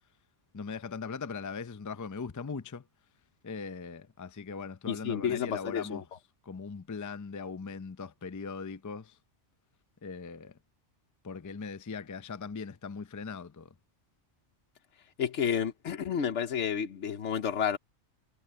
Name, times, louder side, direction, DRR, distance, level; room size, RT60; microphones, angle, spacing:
voice 1, 0.5-2.9 3.4-6.0 6.4-9.2 10.0-10.6 11.2-13.7, left 5 dB, 25° left, 0.4 m, -40 dB
voice 2, 4.9-6.0 15.2-17.8, left 8 dB, 80° left, 1.2 m, -30 dB
omnidirectional pair, 1.2 m